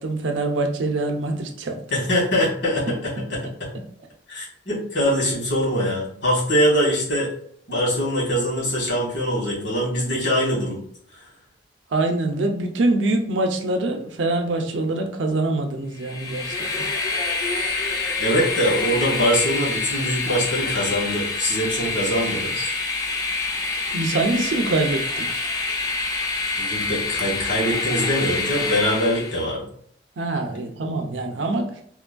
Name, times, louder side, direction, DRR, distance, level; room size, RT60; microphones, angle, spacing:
voice 1, 0.0-1.8 11.9-16.9 23.9-25.5 30.2-31.7, right 2 dB, 80° right, 4 dB, 0.5 m, -24 dB
voice 2, 1.9-3.7 4.3-7.3 7.7-10.8 18.2-22.7 26.6-29.6, equal, 70° left, -5 dB, 1.5 m, -23 dB
Train, 16.0-29.4, left 3 dB, 20° left, 0.3 m, -26 dB
3.0 x 2.2 x 2.5 m, 0.63 s
head